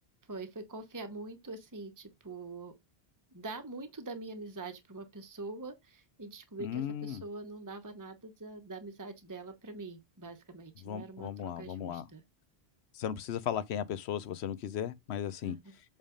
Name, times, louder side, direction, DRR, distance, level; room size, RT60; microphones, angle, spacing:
voice 1, 0.3-2.7 3.3-12.2 15.4-15.7, right 3 dB, 20° right, 1.0 m, -44 dB
voice 2, 6.6-7.2 10.8-12.0 12.9-15.6, left 9 dB, 85° left, 0.9 m, -36 dB
7.5 x 3.4 x 5.1 m
omnidirectional pair, 1.1 m